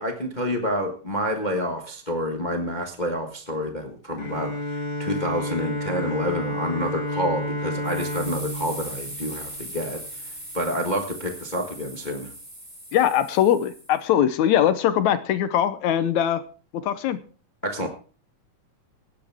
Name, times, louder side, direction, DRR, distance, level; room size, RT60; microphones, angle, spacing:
voice 1, 0.0-10.0 10.5-12.3 17.6-17.9, equal, 40° left, 3 dB, 0.6 m, -28 dB
Bowed string instrument, 4.2-10.1, left 1 dB, 15° left, 1.7 m, -31 dB
sound 1, 7.8-14.0, right 1 dB, 15° right, 4.5 m, -39 dB
voice 2, 12.9-16.4 16.7-17.2, left 10 dB, 75° left, 12 dB, 2.0 m, -21 dB
17.0 x 10.0 x 3.6 m, 0.39 s
omnidirectional pair, 3.6 m